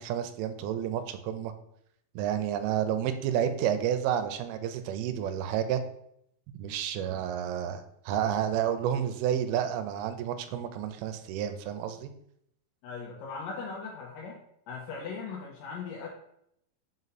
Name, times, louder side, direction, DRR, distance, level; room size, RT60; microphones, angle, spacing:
voice 1, 0.0-1.5 2.2-5.8 6.5-12.1, right 9 dB, 80° right, 9 dB, 2.3 m, -30 dB
voice 2, 12.8-14.4 14.7-16.1, left 5 dB, 80° left, -2 dB, 2.0 m, -39 dB
5.4 x 4.8 x 4.0 m, 0.74 s
omnidirectional pair, 4.7 m